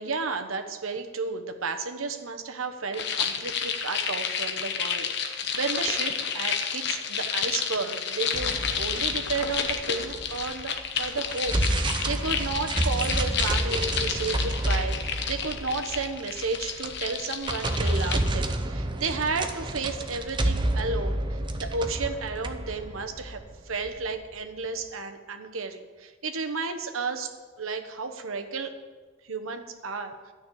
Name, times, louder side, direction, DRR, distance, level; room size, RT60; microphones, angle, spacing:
voice 1, 0.0-23.4 23.6-27.3 27.6-28.7 29.3-30.1, right 4 dB, 85° right, 6 dB, 1.2 m, -32 dB
sound 1, 2.9-18.3, left 7 dB, 55° left, 0.9 m, -31 dB
sound 2, 8.3-10.7 11.1-24.1, right 1 dB, 25° right, 0.7 m, -29 dB
12.5 x 6.5 x 8.5 m, 1.4 s
head